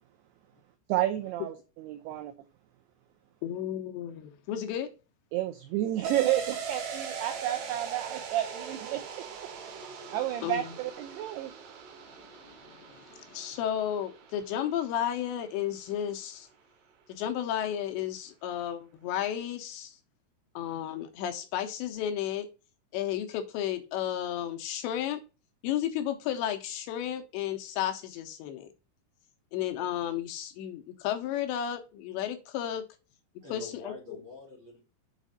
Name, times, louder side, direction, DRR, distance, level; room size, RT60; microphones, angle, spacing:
voice 1, 0.9-2.3 5.3-9.0 10.1-11.5, right 13 dB, 90° right, 2.3 m, -31 dB
voice 2, 3.4-4.9 10.4-10.7 12.4-16.5 17.1-20.0 20.6-22.5 22.9-25.2 25.6-28.7 29.5-32.8 33.5-33.9, left 10 dB, 85° left, 2.8 m, -33 dB
sound 1, 6.0-15.4 15.8-15.9, right 6 dB, 70° right, 3.2 m, -41 dB
voice 3, 33.4-34.8, left 2 dB, 35° right, 2.2 m, -46 dB
7.2 x 4.1 x 4.0 m
omnidirectional pair, 5.4 m